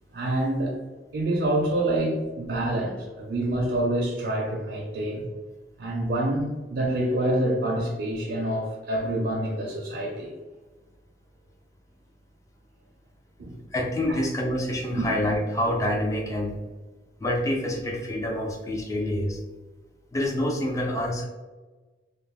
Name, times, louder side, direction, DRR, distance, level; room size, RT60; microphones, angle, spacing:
voice 1, 0.1-0.7 1.1-5.3 5.8-10.3 13.4-13.6 14.1-14.2 14.9-15.1, right 1 dB, 70° right, -3 dB, 0.5 m, -27 dB
voice 2, 13.7-16.6 17.2-19.4 20.1-21.2, left 1 dB, 20° left, 0 dB, 0.4 m, -27 dB
2.4 x 2.0 x 3.1 m, 1.2 s
head